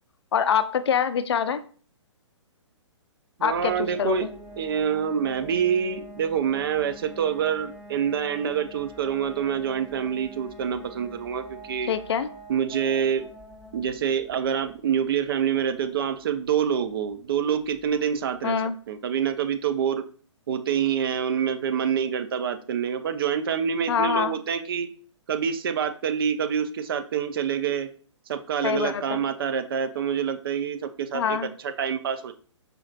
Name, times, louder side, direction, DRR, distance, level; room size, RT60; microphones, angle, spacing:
voice 1, 0.3-1.6 3.4-4.3 11.9-12.3 18.4-18.7 23.9-24.3 28.6-29.2 31.1-31.5, left 7 dB, 60° left, 12 dB, 0.4 m, -25 dB
voice 2, 3.4-4.3 4.6-11.9 12.5-13.2 13.7-18.6 18.9-20.0 20.5-24.9 25.3-27.9 28.3-31.4 31.6-32.3, right 8 dB, 50° right, 10 dB, 0.4 m, -26 dB
sound 1, 3.5-18.1, equal, 5° right, 1.0 m, -46 dB
4.9 x 3.0 x 2.4 m, 0.43 s
figure-of-eight pair, 130°, 16 cm